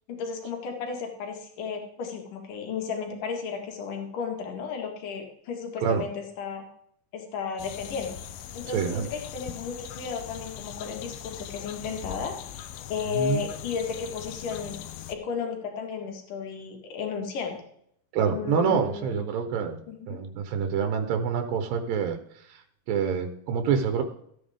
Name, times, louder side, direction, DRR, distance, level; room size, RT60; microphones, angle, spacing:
voice 1, 0.1-6.7 7.1-8.2 8.5-12.4 12.9-14.8 15.1-17.6 18.3-19.2 19.9-20.2, left 6 dB, 70° left, 2 dB, 3.4 m, -34 dB
sound 1, 7.6-15.2, left 10 dB, 85° left, 2.5 m, -41 dB
voice 2, 8.7-9.1 13.1-13.5 18.1-19.8 20.1-22.6 22.9-24.0, right 6 dB, 85° right, 7 dB, 2.7 m, -27 dB
14.5 x 9.1 x 3.6 m, 0.69 s
omnidirectional pair, 3.9 m